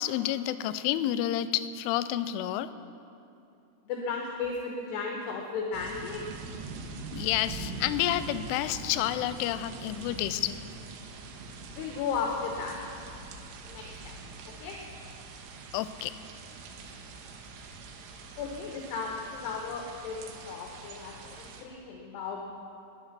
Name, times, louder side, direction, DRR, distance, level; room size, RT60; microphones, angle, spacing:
voice 1, 0.0-2.7 7.1-10.6 15.7-16.1 21.3-21.4, left 12 dB, 90° left, 13 dB, 3.1 m, -29 dB
voice 2, 3.8-6.2 11.7-12.8 13.6-14.1 14.4-14.8 18.4-20.2 20.4-22.4, left 5 dB, 70° left, 0 dB, 2.9 m, -35 dB
sound 1, 5.7-21.6, right 3 dB, 85° right, 3.7 m, -43 dB
20.5 x 9.7 x 5.9 m, 2.6 s
omnidirectional pair, 5.5 m